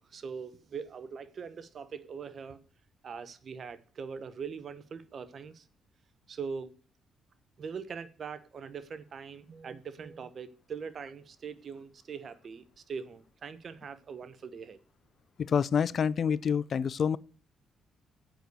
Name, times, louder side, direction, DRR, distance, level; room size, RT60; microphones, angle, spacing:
voice 1, 0.0-2.6 3.0-5.7 6.3-6.7 7.6-14.8, right 6 dB, 50° right, 1.1 m, -42 dB
voice 2, 15.4-17.2, left 7 dB, 50° left, 0.4 m, -27 dB
8.0 x 6.4 x 8.1 m
cardioid pair, 90°, 0 cm